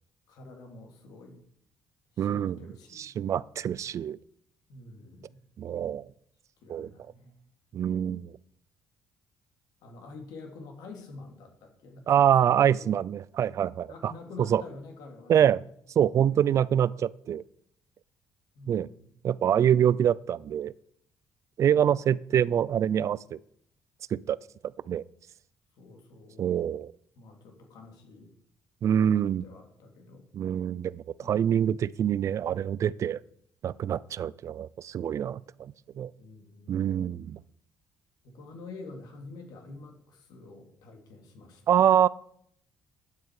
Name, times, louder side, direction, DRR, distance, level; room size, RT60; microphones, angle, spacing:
voice 1, 0.3-1.4 2.1-3.1 4.7-5.4 6.6-7.3 9.8-12.1 12.4-12.9 13.9-15.6 16.2-16.6 18.5-19.1 25.8-26.7 27.2-28.3 29.0-30.3 31.2-31.8 36.2-36.9 38.2-41.8, left 3 dB, 85° left, 3 dB, 2.9 m, -47 dB
voice 2, 2.2-2.6 3.0-4.2 5.6-6.1 6.7-6.9 7.7-8.3 12.1-14.1 14.5-14.6 15.3-15.6 16.0-17.4 18.7-18.9 19.2-20.7 21.6-23.4 24.1-24.4 24.9-25.0 26.4-26.9 28.8-29.4 30.3-33.2 33.6-36.1 36.7-37.4 41.7-42.1, right 9 dB, 50° right, 21 dB, 0.4 m, -25 dB
13.0 x 9.5 x 4.8 m, 0.68 s
cardioid pair, 125°, 7 cm